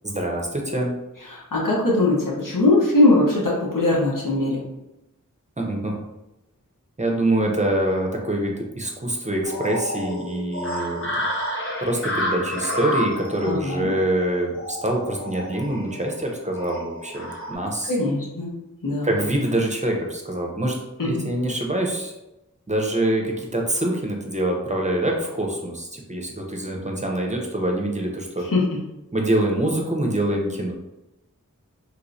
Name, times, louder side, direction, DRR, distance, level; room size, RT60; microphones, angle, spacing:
voice 1, 0.0-1.0 5.6-6.0 7.0-11.1 11.8-17.9 19.0-20.8 21.0-22.1 22.7-28.4 29.1-30.7, right 1 dB, 20° right, 0 dB, 0.7 m, -25 dB
voice 2, 1.2-4.6 13.4-13.9 17.9-18.5 18.8-19.1 21.0-21.3 28.4-28.8, left 2 dB, 90° left, -5 dB, 1.0 m, -21 dB
sound 1, 9.4-17.5, equal, 40° left, 0.9 m, -30 dB
3.1 x 3.0 x 2.6 m, 0.95 s
wide cardioid pair, 55°, 31 cm